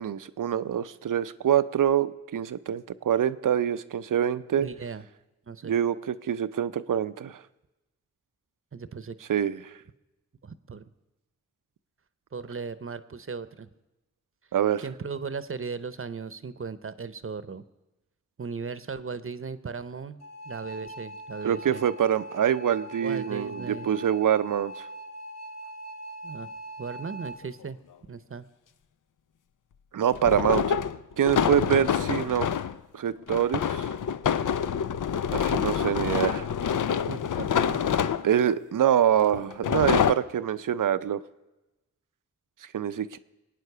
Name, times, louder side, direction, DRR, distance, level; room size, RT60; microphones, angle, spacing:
voice 1, 0.0-4.7 5.6-7.4 9.3-9.6 14.5-14.8 21.4-24.9 29.9-30.8 31.2-32.5 32.9-33.9 35.3-36.5 38.2-41.2 42.7-43.2, right 9 dB, 85° right, 14 dB, 0.6 m, -25 dB
voice 2, 4.6-5.0 5.5-5.8 8.7-9.2 10.4-10.8 12.3-13.7 14.8-17.6 18.4-20.2 20.5-21.8 23.0-23.9 26.2-26.5 26.8-27.8 28.1-28.5 31.7-31.9 37.1-37.8, right 5 dB, 45° right, 14 dB, 0.8 m, -37 dB
sound 1, 20.2-27.4, right 1 dB, 55° left, 1.8 m, -41 dB
sound 2, 27.5-27.6 30.1-32.8 33.3-38.5 39.3-40.1, left 8 dB, 75° left, 0.6 m, -26 dB
22.5 x 9.1 x 6.7 m, 1.0 s
wide cardioid pair, 65°, 31 cm